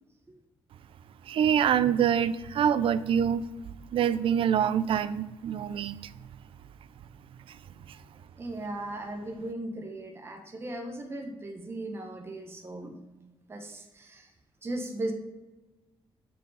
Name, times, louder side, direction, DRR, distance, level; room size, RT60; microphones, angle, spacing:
voice 1, 1.3-3.4 3.9-6.0, right 8 dB, 65° right, 15 dB, 0.4 m, -25 dB
voice 2, 8.4-14.3 14.6-15.1, right 1 dB, 25° right, 3 dB, 1.1 m, -37 dB
12.5 x 4.8 x 4.0 m, 1.1 s
cardioid pair, 135°, 10 cm